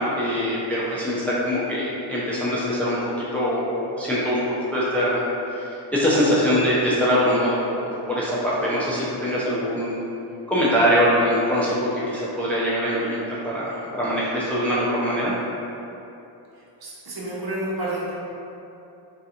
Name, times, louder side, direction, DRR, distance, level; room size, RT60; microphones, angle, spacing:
voice 1, 0.0-5.2 5.5-10.0 10.5-15.3, equal, 5° left, -8 dB, 0.5 m, -23 dB
voice 2, 16.5-18.1, right 1 dB, 50° right, -6 dB, 0.9 m, -30 dB
3.8 x 2.4 x 2.8 m, 2.8 s
cardioid pair, 80°, 47 cm